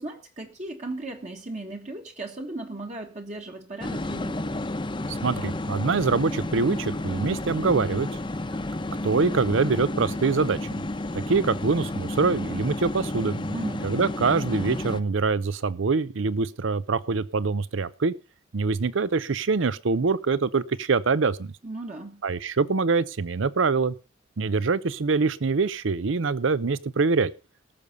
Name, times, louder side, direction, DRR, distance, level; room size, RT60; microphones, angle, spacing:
voice 1, 0.0-4.5 13.5-13.9 21.6-22.2, right 2 dB, 35° right, 1.4 m, -36 dB
sound 1, 3.8-15.0, left 2 dB, 25° left, 0.8 m, -31 dB
voice 2, 5.1-8.2 9.0-10.8 11.1-13.4 13.8-18.1 18.5-21.5 22.2-23.9 24.4-27.3, right 4 dB, 75° right, 0.6 m, -24 dB
18.5 x 7.0 x 5.3 m
head